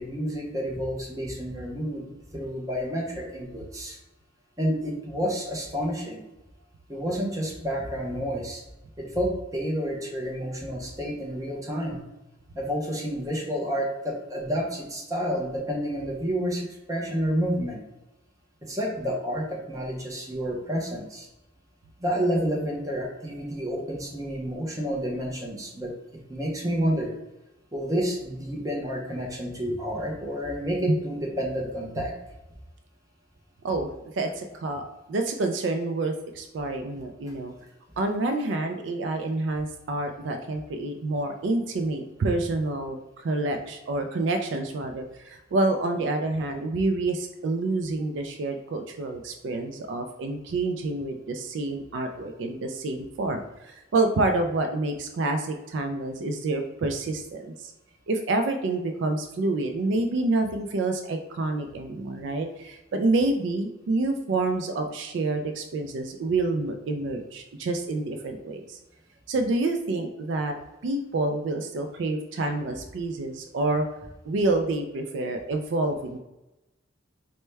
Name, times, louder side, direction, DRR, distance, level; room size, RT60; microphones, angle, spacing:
voice 1, 0.0-2.0 2.3-4.0 4.6-6.2 6.9-8.6 9.0-12.0 12.5-17.8 18.6-21.3 22.0-25.9 26.3-27.1 27.7-32.1, equal, 15° right, -1 dB, 0.7 m, -29 dB
voice 2, 34.1-34.8 35.1-37.5 38.0-57.7 58.1-68.8 69.3-70.6 70.8-73.9 74.3-76.2, right 2 dB, 65° right, 6 dB, 0.3 m, -28 dB
4.3 x 2.1 x 3.2 m, 0.98 s
head